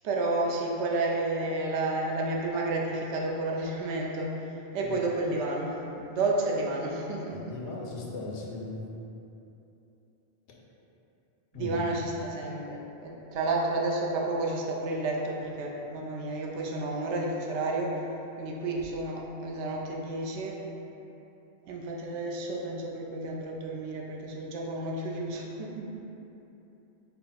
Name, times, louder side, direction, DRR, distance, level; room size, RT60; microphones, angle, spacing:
voice 1, 0.0-4.3 4.7-5.8 6.1-7.6 11.5-18.0 18.4-20.6 21.7-26.0, right 2 dB, 85° right, -2 dB, 0.9 m, -31 dB
voice 2, 7.3-8.8 10.5-10.6 11.5-11.8, left 3 dB, 80° left, -2 dB, 0.9 m, -38 dB
4.5 x 2.0 x 4.0 m, 2.9 s
omnidirectional pair, 1.1 m